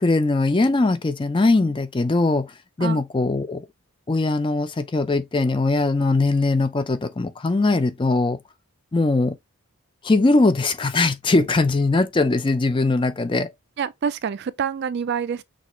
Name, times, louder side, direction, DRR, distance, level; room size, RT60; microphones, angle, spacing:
voice 1, 0.0-3.7 4.1-8.4 8.9-9.4 10.0-13.5, left 2 dB, 20° left, 0.4 m, -21 dB
voice 2, 13.8-15.4, right 7 dB, 50° right, 0.3 m, -26 dB
6.1 x 2.4 x 3.0 m
head